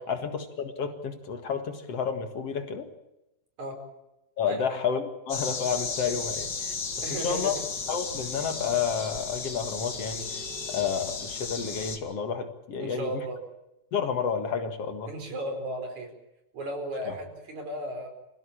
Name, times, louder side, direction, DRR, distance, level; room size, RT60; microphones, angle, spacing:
voice 1, 0.1-2.9 4.4-6.7 7.2-7.6 7.9-10.4 10.7-13.2 13.9-15.1 17.1-17.2, left 6 dB, 55° left, 7 dB, 2.7 m, -30 dB
sound 1, 5.3-12.0, left 5 dB, 35° left, 2.5 m, -34 dB
voice 2, 7.0-7.5 12.8-13.4 15.1-16.1 16.5-18.1, right 1 dB, 65° right, 4 dB, 6.0 m, -35 dB
26.5 x 16.5 x 8.7 m, 0.92 s
omnidirectional pair, 3.5 m